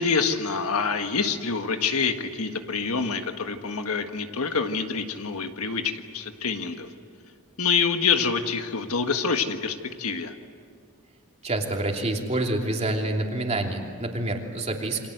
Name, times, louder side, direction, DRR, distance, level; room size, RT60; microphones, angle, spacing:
voice 1, 0.0-6.9 7.6-10.3, left 5 dB, 70° left, 6 dB, 1.7 m, -26 dB
voice 2, 11.4-15.1, right 2 dB, 30° right, 2 dB, 3.0 m, -27 dB
29.5 x 25.0 x 8.1 m, 2.1 s
head